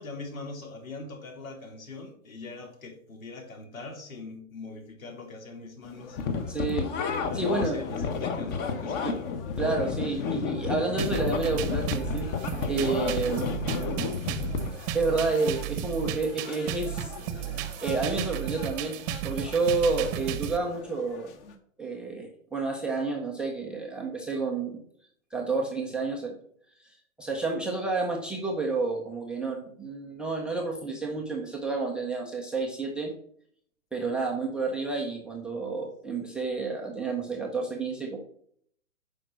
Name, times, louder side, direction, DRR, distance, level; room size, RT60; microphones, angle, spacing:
voice 1, 0.0-6.2 7.2-9.3, left 3 dB, 80° left, 1 dB, 3.7 m, -42 dB
sound 1, 5.8-21.6, left 6 dB, 40° left, 1.7 m, -46 dB
sound 2, 6.2-14.7, left 5 dB, 25° left, 1.0 m, -31 dB
voice 2, 6.5-6.9 7.3-7.8 9.0-9.1 9.6-12.3 12.7-13.5 14.9-17.4 17.8-19.0 19.2-21.3 21.8-24.8 25.3-26.4 27.2-33.1 33.9-38.2, right 3 dB, ahead, 1 dB, 0.4 m, -30 dB
sound 3, 11.0-20.6, right 11 dB, 30° right, 0.9 m, -34 dB
9.0 x 5.2 x 6.1 m, 0.63 s
hypercardioid pair, 140°, 41 cm